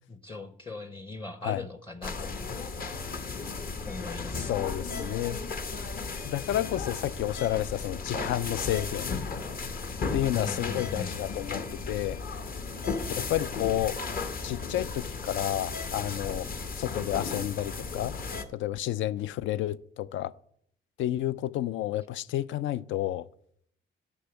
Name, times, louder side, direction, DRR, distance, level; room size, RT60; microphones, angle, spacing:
voice 1, 0.1-2.3 3.9-4.6 10.3-11.1, left 2 dB, 25° left, 0.8 m, -39 dB
sound 1, 2.0-18.4, left 4 dB, 45° left, 1.0 m, -35 dB
voice 2, 4.5-5.4 6.2-9.2 10.1-12.2 13.2-14.0 14.4-16.5 16.7-18.2 18.5-20.3 21.0-23.3, left 13 dB, 75° left, 0.4 m, -30 dB
10.0 x 6.2 x 6.9 m
cardioid pair, 90°, 20 cm